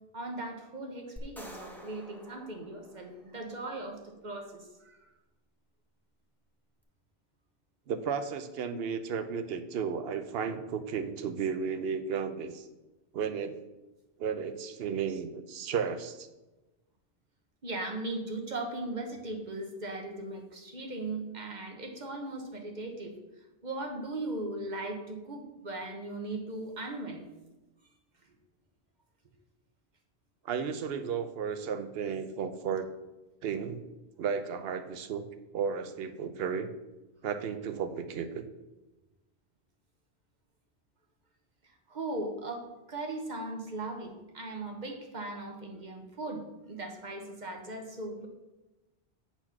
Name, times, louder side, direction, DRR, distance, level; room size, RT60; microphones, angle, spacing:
voice 1, 0.1-5.0 17.6-23.1 23.6-27.2 41.9-48.3, right 2 dB, 45° right, 3 dB, 1.2 m, -38 dB
sound 1, 1.2-3.5, equal, ahead, 0.9 m, -49 dB
voice 2, 7.9-12.7 13.1-13.6 14.2-16.3 30.4-32.9 33.4-33.8 34.2-35.3 35.5-36.7 37.2-38.4, right 6 dB, 70° right, 9 dB, 0.9 m, -33 dB
8.0 x 4.3 x 5.8 m, 1.1 s
omnidirectional pair, 1.1 m